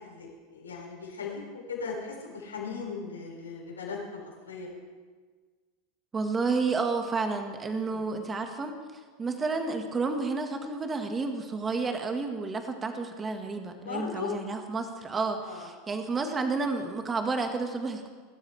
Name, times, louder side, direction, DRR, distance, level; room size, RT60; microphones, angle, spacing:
voice 1, 0.0-4.7 7.8-8.0 13.8-14.3 15.4-15.7, left 5 dB, 85° left, -4 dB, 5.7 m, -38 dB
voice 2, 6.1-8.8 9.2-18.1, right 4 dB, 25° right, 5 dB, 1.7 m, -31 dB
24.0 x 13.0 x 3.5 m, 1.5 s
hypercardioid pair, 90°, 0 cm